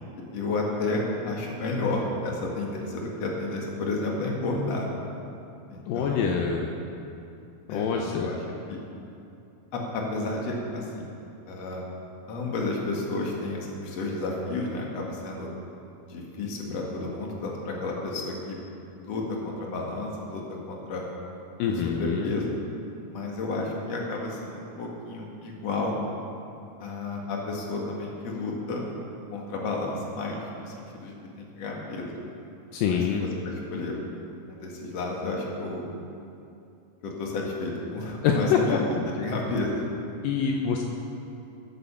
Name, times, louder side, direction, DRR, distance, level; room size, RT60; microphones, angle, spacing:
voice 1, 0.3-4.9 5.7-6.4 7.7-8.4 8.7-8.8 9.7-11.1 11.5-11.8 12.3-15.5 16.1-18.6 19.0-21.0 21.8-22.5 23.1-26.0 26.8-28.9 29.3-32.2 32.9-34.0 34.5-35.9 37.0-39.9, left 2 dB, 50° left, -1 dB, 2.8 m, -31 dB
voice 2, 5.9-6.7 7.7-8.3 21.6-22.3 32.7-33.2 38.2-38.8 40.2-40.8, left 6 dB, 80° left, 1 dB, 2.5 m, -25 dB
16.0 x 8.3 x 7.1 m, 2.6 s
omnidirectional pair, 4.1 m